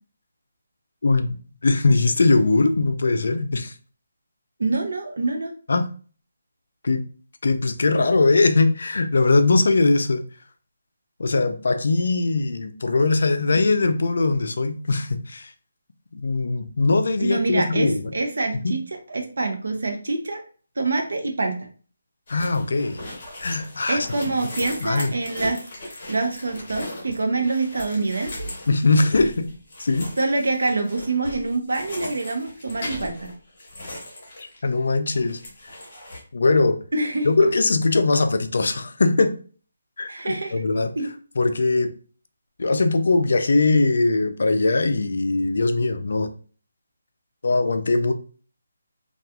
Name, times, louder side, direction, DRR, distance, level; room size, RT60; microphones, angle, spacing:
voice 1, 1.0-1.4 1.6-3.7 5.7-5.9 6.8-7.0 7.4-10.2 11.2-15.5 16.1-18.1 18.6-18.7 22.3-23.0 23.4-24.1 24.8-25.1 28.7-29.5 29.8-30.1 34.4-35.4 36.3-36.8 37.2-39.4 40.0-40.9 41.4-41.9 42.6-46.3 47.4-48.1, left 3 dB, 60° left, 8 dB, 0.3 m, -21 dB
voice 2, 4.6-5.5 17.2-18.8 19.1-20.4 20.8-21.6 23.9-25.6 25.9-28.4 30.2-33.3 36.9-37.3 40.1-40.6 41.0-41.1, right 3 dB, 70° right, 4 dB, 0.6 m, -25 dB
sound 1, 22.3-34.9 35.1-36.2, left 1 dB, 30° left, 0.9 m, -38 dB
2.8 x 2.3 x 2.3 m, 0.40 s
hypercardioid pair, 175°, 0 cm